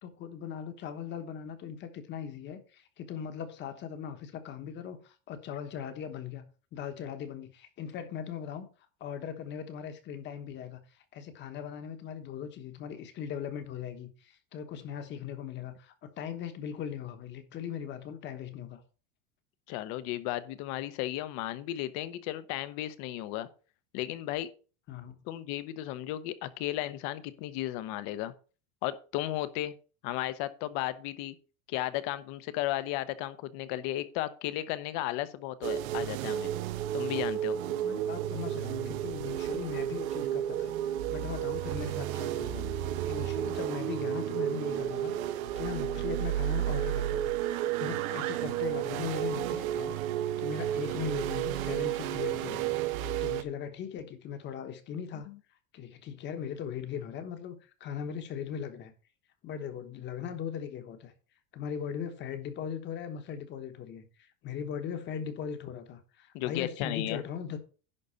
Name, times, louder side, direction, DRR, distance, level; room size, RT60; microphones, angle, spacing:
voice 1, 0.0-6.4 6.7-8.7 9.0-10.8 11.1-18.8 24.9-25.1 37.6-47.3 47.8-50.0 50.4-52.8 53.2-55.3 55.7-58.9 59.4-61.1 61.5-67.6, left 8 dB, 25° left, 1.1 m, -39 dB
voice 2, 19.7-23.5 23.9-24.5 25.3-28.3 28.8-29.7 30.0-31.3 31.7-36.5 36.9-37.6 55.3-55.4 66.3-67.2, left 14 dB, 45° left, 0.9 m, -34 dB
sound 1, 35.6-53.4, right 11 dB, 90° right, 1.1 m, -32 dB
11.0 x 4.0 x 6.7 m
cardioid pair, 175°, 40 cm